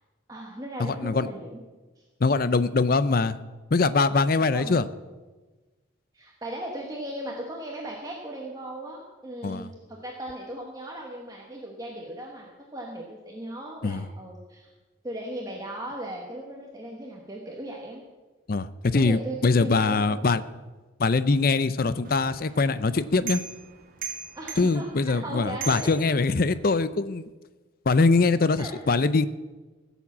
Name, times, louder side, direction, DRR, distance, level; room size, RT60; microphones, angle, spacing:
voice 1, 0.3-1.6 2.0-2.1 4.3-4.9 6.1-14.7 15.0-18.0 18.9-20.3 24.3-25.9 28.6-28.7, right 1 dB, 20° right, -1 dB, 1.3 m, -37 dB
voice 2, 0.8-1.3 2.2-3.4 3.7-4.9 9.4-9.7 13.8-14.0 18.5-20.4 21.0-23.4 24.6-27.3 27.9-29.3, left 3 dB, 45° left, 14 dB, 0.5 m, -23 dB
sound 1, 22.0-26.7, right 6 dB, 45° right, 2.0 m, -40 dB
15.5 x 7.2 x 7.3 m, 1.3 s
head